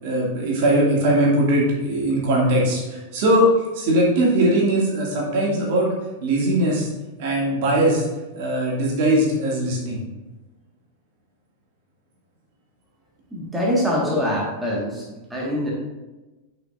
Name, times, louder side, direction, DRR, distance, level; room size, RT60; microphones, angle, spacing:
voice 1, 0.0-3.5 3.7-5.9 6.2-6.9 7.2-8.0 8.3-10.0, right 1 dB, 50° right, -3 dB, 2.3 m, -20 dB
voice 2, 13.3-15.0 15.3-15.7, equal, 10° right, -4 dB, 1.7 m, -23 dB
10.5 x 5.8 x 2.6 m, 1.1 s
figure-of-eight pair, 90°, 0 cm